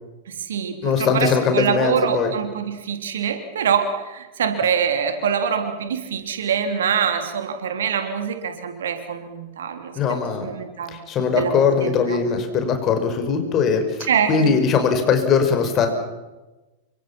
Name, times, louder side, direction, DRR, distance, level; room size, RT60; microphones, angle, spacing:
voice 1, 0.3-9.9 10.4-11.0 11.3-11.5 11.8-12.2 14.1-14.6, right 7 dB, 65° right, 6 dB, 3.5 m, -24 dB
voice 2, 0.8-2.3 10.0-10.5 10.9-15.9, left 6 dB, 30° left, 6 dB, 5.8 m, -20 dB
29.0 x 26.0 x 6.0 m, 1.1 s
figure-of-eight pair, 90°, 0 cm